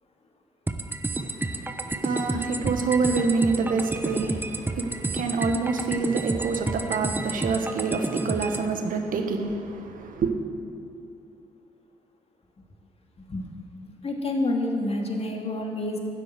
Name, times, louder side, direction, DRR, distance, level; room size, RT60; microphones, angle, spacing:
sound 1, 0.7-8.7, right 2 dB, 10° right, 1.0 m, -30 dB
voice 1, 1.1-10.3, right 4 dB, 60° right, 5 dB, 1.5 m, -27 dB
voice 2, 14.0-16.0, left 2 dB, 40° left, 1 dB, 2.5 m, -28 dB
12.5 x 7.7 x 9.5 m, 2.6 s
hypercardioid pair, 45°, 16 cm